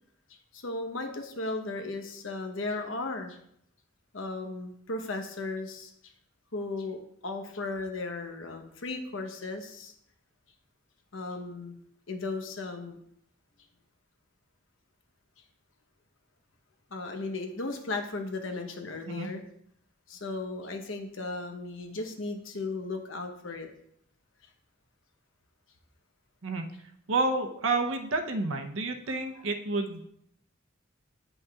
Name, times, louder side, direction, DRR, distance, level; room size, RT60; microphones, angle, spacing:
voice 1, 0.5-3.4 4.1-6.1 6.5-9.9 11.1-11.8 12.1-13.0 16.9-19.4 20.1-23.7 29.1-29.5, left 3 dB, 70° left, 5 dB, 1.0 m, -36 dB
voice 2, 27.1-30.0, right 3 dB, 75° right, 4 dB, 0.8 m, -29 dB
9.9 x 5.4 x 2.4 m, 0.72 s
head